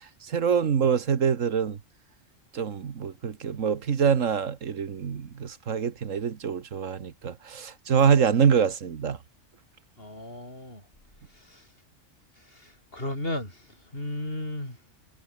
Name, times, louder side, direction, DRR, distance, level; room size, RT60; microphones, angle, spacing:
voice 1, 0.3-1.8 2.5-9.2, right 7 dB, 85° right, 1.7 m, -25 dB
voice 2, 10.0-10.9 11.3-11.7 12.4-14.8, left 1 dB, 45° left, 7.8 m, -35 dB
omnidirectional pair, 1.3 m